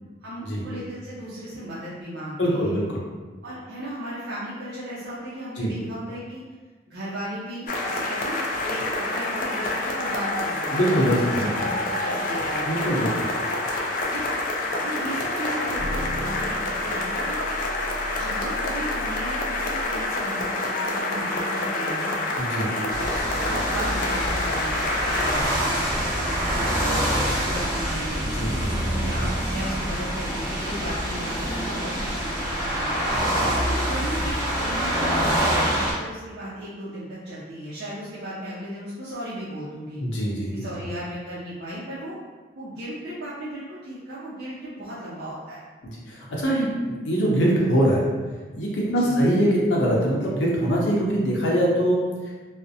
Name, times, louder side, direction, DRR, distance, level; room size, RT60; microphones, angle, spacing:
voice 1, 0.2-2.8 3.4-6.4 6.9-12.8 13.4-13.6 14.1-14.2 14.7-17.4 18.1-22.3 22.8-23.1 23.3-26.7 27.1-28.5 29.0-33.0 33.5-40.0 40.5-42.1 42.5-45.6 49.0-49.3, right 1 dB, 65° right, -9 dB, 0.5 m, -36 dB
voice 2, 2.4-3.0 5.6-5.7 10.7-11.5 12.7-13.3 22.4-22.7 28.2-29.3 33.1-33.5 40.0-40.7 45.8-48.1 48.5-52.3, equal, 90° left, -4 dB, 0.6 m, -23 dB
sound 1, 7.7-25.4, left 2 dB, 45° left, 0.3 m, -27 dB
sound 2, 14.1-14.3 15.7-19.9, equal, 30° left, 0.7 m, -36 dB
sound 3, 22.9-35.9, equal, 20° right, 0.8 m, -26 dB
2.4 x 2.0 x 2.6 m, 1.4 s
head